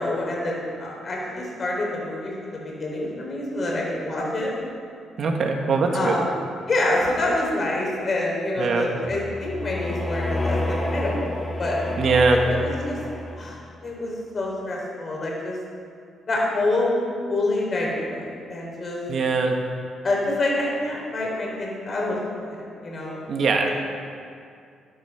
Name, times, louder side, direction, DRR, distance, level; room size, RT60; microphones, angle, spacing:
voice 1, 0.0-4.5 5.9-6.3 6.7-11.8 12.3-13.0 13.4-15.6 16.3-17.0 17.3-19.0 20.0-23.2, left 2 dB, 40° left, -3 dB, 4.2 m, -27 dB
voice 2, 5.2-6.1 8.6-8.9 12.0-12.4 19.1-19.5 23.3-23.7, right 4 dB, 60° right, 2 dB, 1.9 m, -21 dB
sound 1, 9.0-13.7, left 1 dB, 10° left, 2.2 m, -29 dB
12.0 x 11.0 x 6.1 m, 2.3 s
cardioid pair, 90°, 0 cm